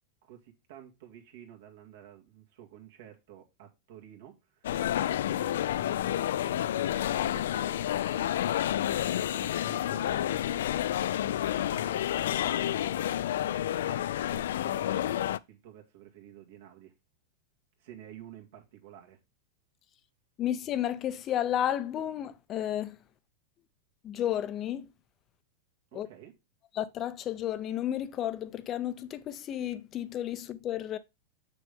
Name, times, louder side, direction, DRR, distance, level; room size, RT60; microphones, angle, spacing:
voice 1, 0.2-8.3 8.8-16.9 17.8-19.2 25.9-26.3, right 11 dB, 70° right, 2.0 m, -52 dB
sound 1, 4.6-15.4, left 12 dB, 80° left, 0.3 m, -30 dB
voice 2, 20.4-23.0 24.0-24.9 25.9-26.1 26.7-31.0, left 11 dB, 30° left, 0.5 m, -32 dB
6.7 x 6.0 x 3.5 m
supercardioid pair, 150°, 0 cm